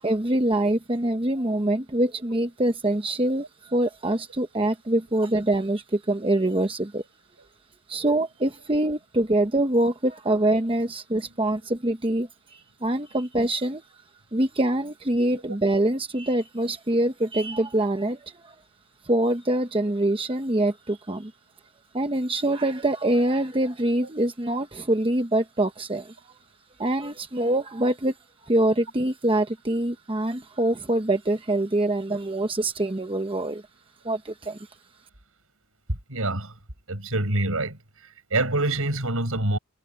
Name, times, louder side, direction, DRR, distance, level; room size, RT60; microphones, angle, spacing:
voice 1, 0.0-7.0 7.9-13.8 14.3-18.5 19.0-21.3 21.9-26.3 26.8-28.1 28.4-33.6 34.0-34.7, right 1 dB, 25° right, 0.9 m, -25 dB
voice 2, 35.9-36.5 36.9-37.8 38.3-39.6, right 2 dB, 70° right, 6.1 m, -25 dB
head